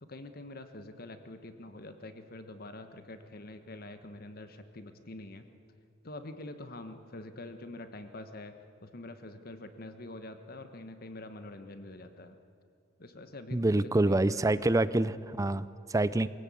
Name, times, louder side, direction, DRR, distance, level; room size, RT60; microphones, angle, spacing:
voice 1, 0.0-5.5 6.0-12.4 13.0-14.8, left 2 dB, 50° left, 9 dB, 1.2 m, -46 dB
voice 2, 13.5-16.3, right 2 dB, 15° right, 16 dB, 0.5 m, -26 dB
22.5 x 17.0 x 8.5 m, 2.4 s
head